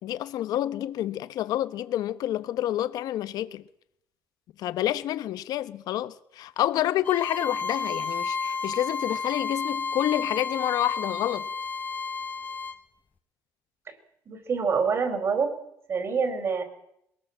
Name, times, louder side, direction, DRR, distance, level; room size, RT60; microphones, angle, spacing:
voice 1, 0.0-3.6 4.6-11.5, left 12 dB, 75° left, 1.1 m, -28 dB
Bowed string instrument, 7.0-12.8, left 4 dB, 25° left, 1.2 m, -32 dB
voice 2, 14.3-15.5 15.9-16.6, right 5 dB, 40° right, 4.4 m, -26 dB
22.5 x 18.5 x 7.5 m
cardioid pair, 140°, 7 cm